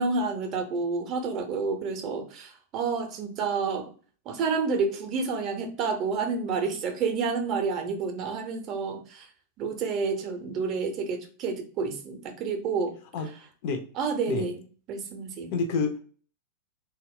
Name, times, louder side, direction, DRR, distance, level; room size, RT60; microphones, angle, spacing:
voice 1, 0.0-3.9 4.3-9.3 9.6-13.0 14.0-14.6 14.9-15.5, right 4 dB, 35° right, 5 dB, 0.5 m, -29 dB
voice 2, 15.5-16.0, left 5 dB, 50° left, 6 dB, 0.5 m, -28 dB
2.1 x 2.0 x 3.5 m, 0.40 s
figure-of-eight pair, 90°, 0 cm